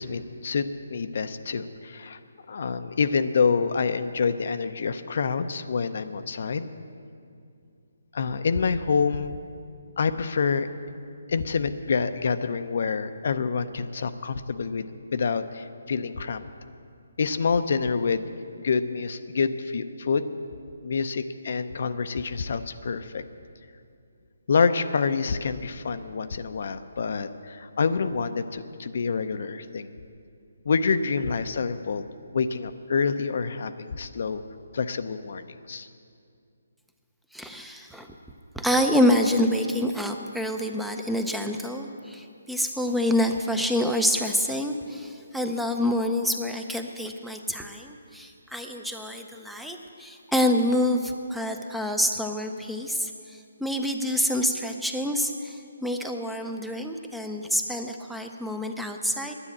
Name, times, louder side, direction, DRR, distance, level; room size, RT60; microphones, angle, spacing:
voice 1, 0.0-2.2 2.5-6.7 8.1-9.4 10.0-10.7 11.3-14.9 15.1-16.4 17.2-18.2 18.6-20.3 20.8-23.2 24.5-29.9 30.7-32.0 32.3-34.4 34.7-35.9, left 5 dB, 55° left, 11 dB, 0.6 m, -27 dB
voice 2, 37.3-38.1 38.5-59.3, left 1 dB, ahead, 4 dB, 0.5 m, -27 dB
10.5 x 9.8 x 8.6 m, 2.4 s
hypercardioid pair, 160°, 0 cm